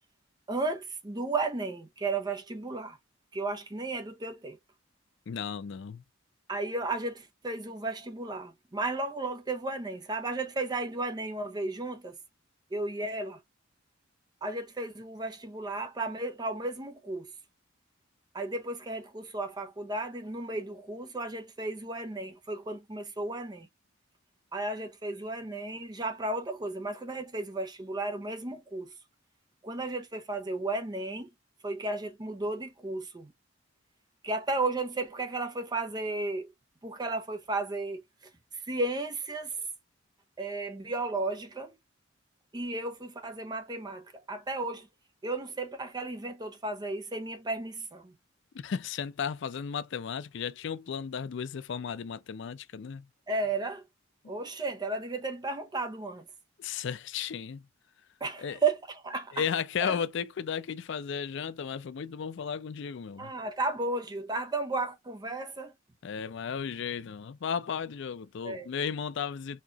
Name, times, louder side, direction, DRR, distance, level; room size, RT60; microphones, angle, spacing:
voice 1, 0.5-3.0 3.3-4.6 6.5-12.2 12.7-13.4 14.4-17.3 18.3-23.7 24.5-28.9 29.6-31.3 31.6-33.3 34.2-36.5 36.8-38.0 38.5-39.6 40.4-41.7 42.5-44.9 45.2-48.1 53.3-53.8 54.3-56.3 58.2-59.4 59.8-60.0 63.2-65.7 68.4-68.7, right 2 dB, 20° right, 0.6 m, -34 dB
voice 2, 5.3-6.0 48.5-53.1 56.6-57.7 58.4-58.6 59.3-63.3 66.0-69.6, left 7 dB, 60° left, 0.4 m, -34 dB
4.3 x 2.8 x 2.3 m
head